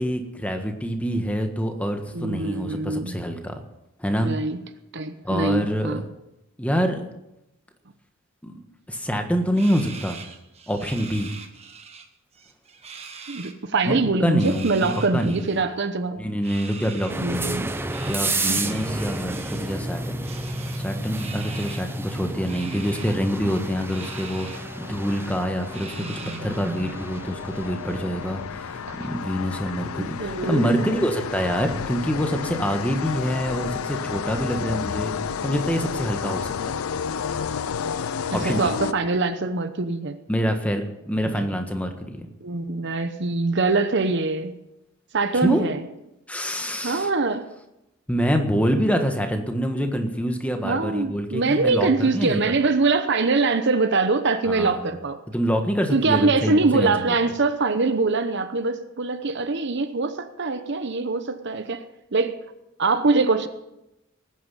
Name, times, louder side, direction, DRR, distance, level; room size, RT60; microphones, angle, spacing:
voice 1, 0.0-3.5 4.0-4.3 5.2-6.0 6.6-7.0 8.4-8.6 8.9-10.2 10.7-11.3 13.8-13.9 14.2-15.5 16.2-17.5 18.0-20.2 20.8-36.5 38.3-38.7 40.3-42.3 45.4-45.7 46.3-47.1 48.1-52.4 54.5-54.8 55.3-56.9, equal, 5° left, 5 dB, 1.4 m, -26 dB
voice 2, 2.1-3.1 4.2-4.6 4.9-6.0 13.3-16.2 17.2-17.8 18.2-18.7 26.0-26.8 28.9-29.0 30.0-30.9 38.3-40.2 42.4-44.5 45.1-45.8 46.8-47.5 50.6-55.2 55.9-61.8 62.1-62.4 62.8-63.5, right 3 dB, 55° right, 9 dB, 0.9 m, -23 dB
sound 1, 9.5-12.1 12.3-13.5 14.3-15.6 16.4-17.2 17.9-19.8 20.2-21.9 22.4-23.2 23.9-24.6 25.0-25.1 25.7-26.6, right 5 dB, 30° right, 1.3 m, -42 dB
sound 2, 17.1-33.9, right 2 dB, 10° right, 0.7 m, -33 dB
sound 3, 22.6-39.4, left 7 dB, 90° left, 0.5 m, -32 dB
19.5 x 9.6 x 5.6 m, 0.91 s
head